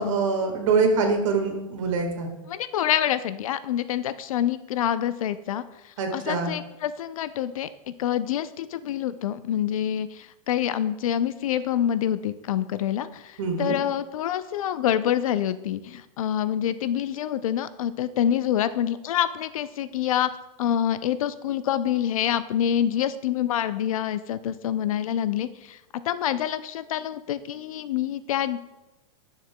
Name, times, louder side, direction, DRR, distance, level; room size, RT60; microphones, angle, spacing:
voice 1, 0.0-2.3 6.0-6.5 13.4-13.8, right 4 dB, 65° right, 4 dB, 1.6 m, -24 dB
voice 2, 2.5-20.3 20.6-25.8 26.0-28.6, left 10 dB, 85° left, 14 dB, 0.5 m, -26 dB
10.0 x 6.7 x 2.2 m, 1.0 s
supercardioid pair, 170°, 17 cm